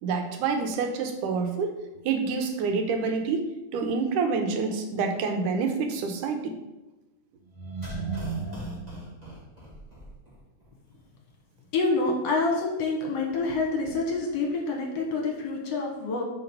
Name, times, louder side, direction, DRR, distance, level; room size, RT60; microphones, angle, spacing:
voice 1, 0.0-1.8 2.0-6.6 12.1-12.2, right 4 dB, 90° right, 5 dB, 2.4 m, -27 dB
sound 1, 7.5-10.4 10.6-10.7, right 3 dB, 55° right, 0.4 m, -35 dB
voice 2, 11.7-16.2, left 3 dB, 65° left, 0 dB, 2.0 m, -27 dB
5.9 x 5.0 x 5.4 m, 1.1 s
omnidirectional pair, 3.5 m